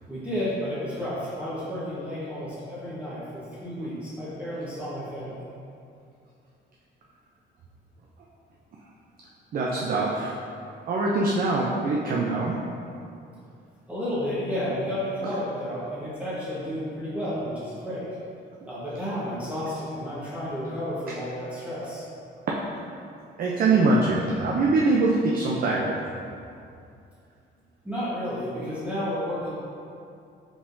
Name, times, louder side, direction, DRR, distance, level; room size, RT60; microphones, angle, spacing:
voice 1, 0.1-5.4 13.9-18.1 18.7-22.0 27.8-29.5, equal, 5° right, -11 dB, 1.1 m, -31 dB
voice 2, 9.5-10.3 10.9-12.6 22.5-22.6 23.4-26.0, right 3 dB, 45° right, -3 dB, 0.5 m, -23 dB
4.9 x 3.5 x 2.6 m, 2.5 s
cardioid pair, 90°, 20 cm